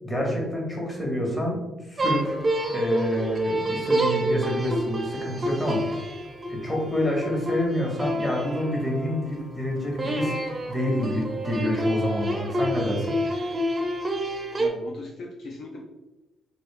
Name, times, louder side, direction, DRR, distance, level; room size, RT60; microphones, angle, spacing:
voice 1, 0.0-1.6 1.9-2.4 2.7-5.9 6.5-10.3 10.7-13.5, equal, 20° left, -2 dB, 1.2 m, -27 dB
sound 1, 2.0-9.4 10.0-14.7, right 1 dB, 30° right, 0.5 m, -28 dB
voice 2, 14.6-15.8, left 2 dB, 60° left, 0 dB, 0.4 m, -39 dB
3.0 x 2.7 x 3.2 m, 1.0 s
cardioid pair, 90°, 0 cm